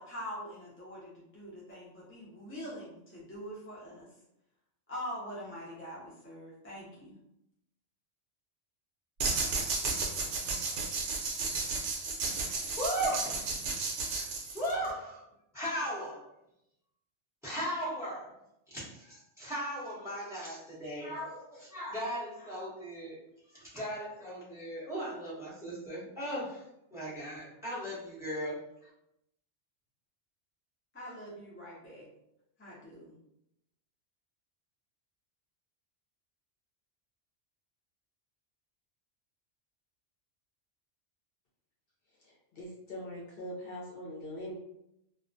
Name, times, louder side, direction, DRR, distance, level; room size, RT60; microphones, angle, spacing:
voice 1, 0.0-4.1 4.9-7.2 30.9-32.0 32.6-33.1, equal, 20° left, -8 dB, 0.4 m, -44 dB
sound 1, 9.2-14.9, right 3 dB, 90° right, 0.9 m, -33 dB
voice 2, 12.8-13.4 14.0-14.3 14.5-15.3 15.5-16.3 17.4-18.3 18.7-23.2 23.5-26.6 26.9-28.6, equal, 5° right, -10 dB, 0.9 m, -37 dB
voice 3, 42.6-44.6, equal, 60° left, -5 dB, 0.8 m, -41 dB
2.3 x 2.1 x 2.5 m, 0.82 s
omnidirectional pair, 1.2 m